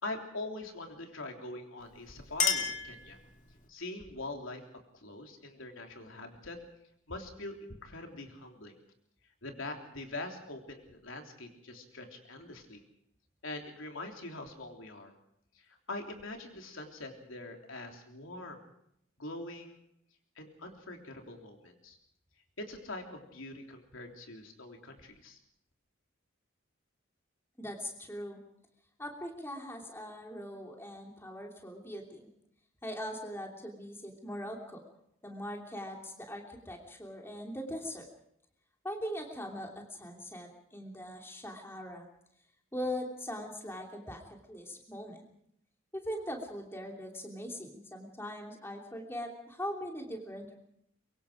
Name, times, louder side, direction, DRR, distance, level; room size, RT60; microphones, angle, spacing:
voice 1, 0.0-3.2 3.7-4.6 4.9-6.6 7.1-8.8 9.4-12.8 13.4-15.1 15.6-18.7 19.2-19.8 20.4-22.0 22.6-25.4, left 2 dB, 75° left, 3 dB, 3.4 m, -43 dB
Chink clink, 1.8-3.7, left 6 dB, 40° left, 2.4 m, -33 dB
voice 2, 27.6-28.4 29.0-32.3 32.8-34.8 35.2-38.1 38.8-42.1 42.7-44.2 44.5-45.3 45.9-50.6, equal, 10° left, 1 dB, 2.9 m, -41 dB
24.0 x 23.5 x 5.1 m, 0.73 s
head